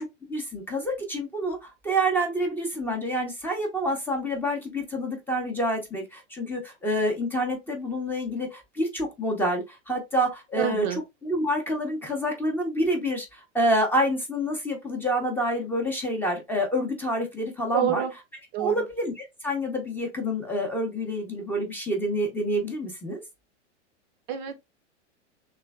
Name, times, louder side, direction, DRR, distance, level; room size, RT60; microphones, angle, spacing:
voice 1, 0.0-18.0 18.6-23.2, equal, 5° left, 0.6 m, -28 dB
voice 2, 10.6-11.0 17.7-18.1 18.5-18.9 24.3-24.6, right 10 dB, 40° right, 0.5 m, -27 dB
3.2 x 3.1 x 2.2 m
hypercardioid pair, 130°, 37 cm